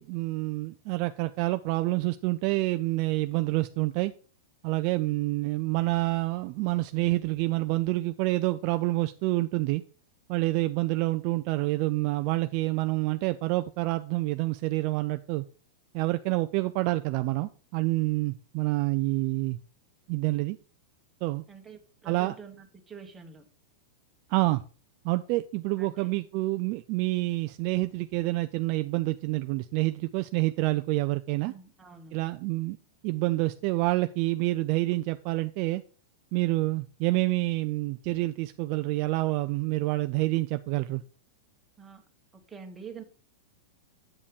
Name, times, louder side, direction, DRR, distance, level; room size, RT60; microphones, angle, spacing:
voice 1, 0.0-4.1 4.6-9.8 10.3-15.4 15.9-19.6 20.1-20.6 21.2-21.4 22.0-22.4 24.3-24.6 25.0-31.5 32.1-32.8 33.0-35.8 36.3-41.0, right 20 dB, 40° right, 0.4 m, -27 dB
voice 2, 21.5-23.4 25.8-26.1 31.4-32.2 41.8-42.0 42.5-43.0, right 5 dB, 10° right, 1.4 m, -46 dB
8.4 x 5.3 x 5.2 m
supercardioid pair, 155°, 0 cm